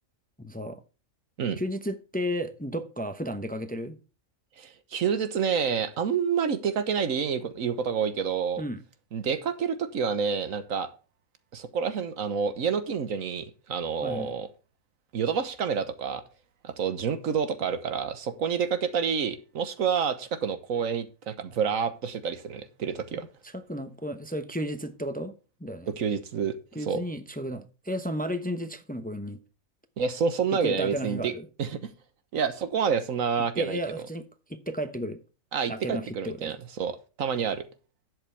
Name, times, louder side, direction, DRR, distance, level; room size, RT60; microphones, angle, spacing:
voice 1, 0.4-0.8 1.6-4.0 8.6-8.8 14.0-14.3 23.4-25.3 25.6-25.9 26.7-29.4 30.6-31.5 33.6-34.2 34.5-35.2 35.7-36.5, equal, 10° left, 0.7 m, -33 dB
voice 2, 4.6-8.6 9.1-10.9 11.5-14.5 15.1-16.2 16.6-23.3 25.9-26.6 26.9-27.0 30.0-31.3 31.6-31.9 32.3-33.8 35.5-37.6, right 6 dB, 90° right, 1.5 m, -28 dB
11.5 x 8.0 x 3.4 m
omnidirectional pair, 1.4 m